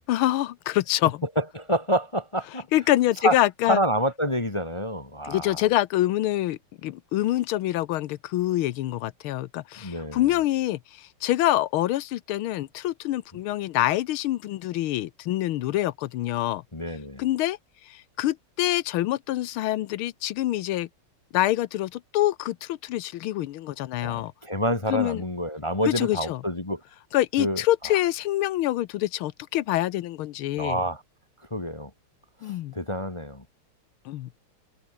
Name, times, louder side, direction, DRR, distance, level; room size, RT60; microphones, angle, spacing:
voice 1, 0.1-1.2 2.7-3.8 5.2-16.6 17.2-17.6 17.9-20.9 21.3-24.3 24.9-25.2 25.9-26.4 27.1-30.8 32.4-32.7 34.0-34.3, left 15 dB, 80° left, 1.6 m, -26 dB
voice 2, 1.4-2.7 3.2-3.4 3.7-5.6 9.8-10.2 16.7-17.2 24.0-26.8 27.4-27.6 30.6-31.0 31.5-31.9 32.4-33.4, equal, 20° left, 1.0 m, -27 dB
omnidirectional pair, 2.4 m